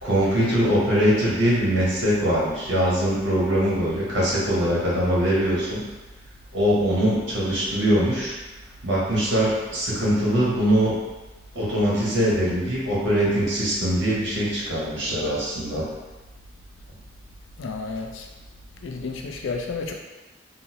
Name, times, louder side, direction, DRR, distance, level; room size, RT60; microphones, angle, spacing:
voice 1, 0.0-5.8 6.5-8.3 8.8-10.9 11.5-15.9, equal, 85° right, -7 dB, 1.1 m, -22 dB
voice 2, 17.6-18.3 18.8-19.9, left 4 dB, 80° left, 2 dB, 0.4 m, -31 dB
3.9 x 2.0 x 2.8 m, 1.2 s
head